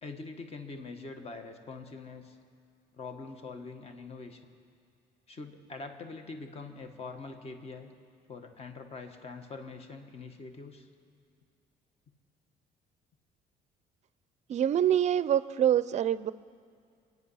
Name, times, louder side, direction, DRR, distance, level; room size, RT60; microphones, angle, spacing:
voice 1, 0.0-2.4 2.9-4.5 5.3-7.9 8.3-10.9, left 3 dB, 35° left, 6 dB, 1.5 m, -44 dB
voice 2, 14.5-16.3, right 10 dB, 45° right, 16 dB, 0.5 m, -25 dB
27.0 x 9.5 x 5.7 m, 2.3 s
cardioid pair, 110°, 17 cm